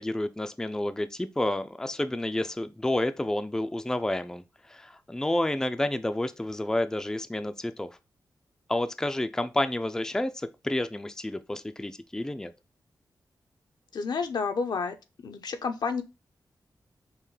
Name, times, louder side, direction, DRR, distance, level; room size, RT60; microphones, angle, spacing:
voice 1, 0.0-8.0 8.7-12.5, left 1 dB, 10° left, 0.3 m, -30 dB
voice 2, 13.9-14.9 15.2-16.0, left 5 dB, 75° left, 0.6 m, -30 dB
5.5 x 2.1 x 3.1 m
wide cardioid pair, 95°, 7 cm